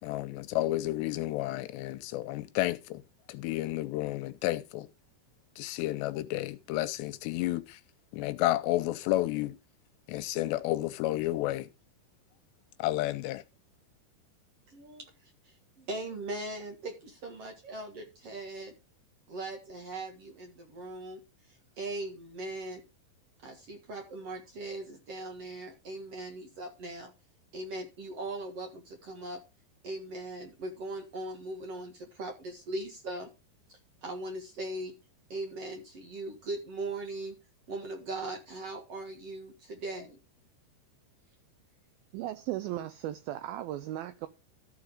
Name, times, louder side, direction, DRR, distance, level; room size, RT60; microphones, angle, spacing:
voice 1, 0.0-3.0 3.3-4.9 5.6-7.8 8.1-9.6 10.1-11.7 12.8-13.4, left 16 dB, 85° left, 2.9 m, -31 dB
voice 2, 14.7-18.7 19.3-22.8 23.4-27.1 27.5-29.4 29.8-33.3 33.7-35.0 35.3-37.4 37.7-40.2, right 2 dB, 50° right, 1.9 m, -40 dB
voice 3, 42.1-44.3, right 13 dB, 85° right, 2.1 m, -36 dB
14.0 x 5.2 x 5.1 m
omnidirectional pair, 4.9 m